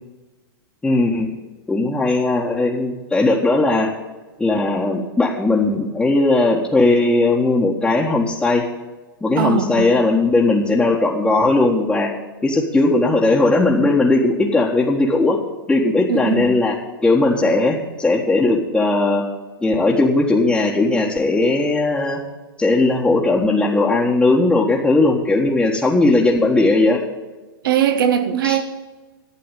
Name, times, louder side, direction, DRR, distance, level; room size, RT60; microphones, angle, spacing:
voice 1, 0.8-1.3 1.7-3.9 4.4-8.6 9.2-12.1 12.4-15.4 15.7-16.8 17.0-19.2 19.6-22.2 22.6-27.0 28.4-28.6, left 2 dB, 10° left, -5 dB, 1.6 m, -17 dB
voice 2, 9.4-9.9 16.1-16.5 27.6-28.6, right 8 dB, 65° right, 9 dB, 1.7 m, -19 dB
12.0 x 8.4 x 9.0 m, 1.2 s
hypercardioid pair, 120°, 12 cm